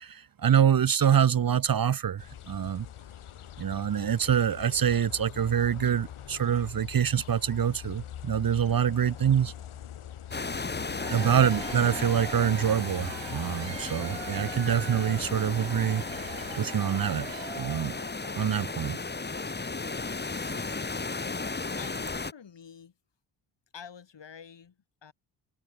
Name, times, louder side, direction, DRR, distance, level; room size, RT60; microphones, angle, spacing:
voice 1, 0.0-2.9 3.6-9.5 11.1-17.3 17.6-17.9 18.3-19.0 20.4-20.5, right 9 dB, 45° right, 0.9 m, -26 dB
sound 1, 2.2-16.6, left 10 dB, 75° left, 3.3 m, -43 dB
sound 2, 10.3-22.3, left 3 dB, 20° left, 1.5 m, -35 dB
Cheering / Applause / Crowd, 10.8-18.4, right 9 dB, 60° right, 1.9 m, -43 dB
voice 2, 21.8-22.9 23.7-25.1, left 7 dB, 55° left, 6.8 m, -48 dB
cardioid pair, 70°, 50 cm